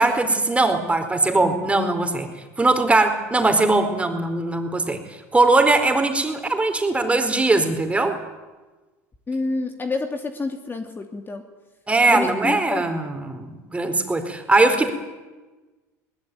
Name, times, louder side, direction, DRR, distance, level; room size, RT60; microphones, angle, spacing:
voice 1, 0.0-2.3 2.6-8.2 11.9-14.9, right 2 dB, 15° right, 7 dB, 4.3 m, -20 dB
voice 2, 9.3-11.4 12.1-12.8, left 3 dB, 25° left, 5 dB, 2.8 m, -28 dB
21.5 x 20.0 x 9.5 m, 1.2 s
hypercardioid pair, 85°, 9 cm